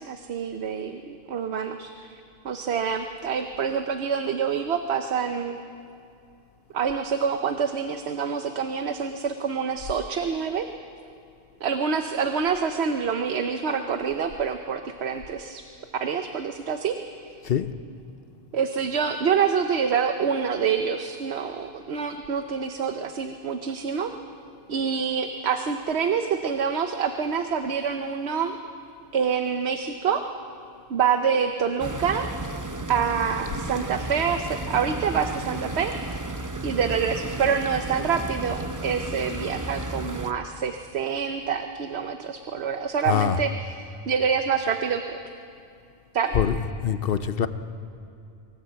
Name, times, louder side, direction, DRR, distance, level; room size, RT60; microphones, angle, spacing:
voice 1, 0.0-5.6 6.7-10.7 11.6-15.6 16.0-17.4 18.5-24.1 24.7-28.6 29.1-30.2 30.9-32.3 32.9-35.9 36.6-45.2 46.1-46.4, right 6 dB, 90° right, 6 dB, 1.1 m, -26 dB
sound 1, 31.8-40.3, right 2 dB, 20° right, 0.6 m, -33 dB
voice 2, 43.1-43.4 46.3-47.5, left 8 dB, 65° left, 11 dB, 0.9 m, -24 dB
24.0 x 15.0 x 8.0 m, 2.6 s
omnidirectional pair, 1.1 m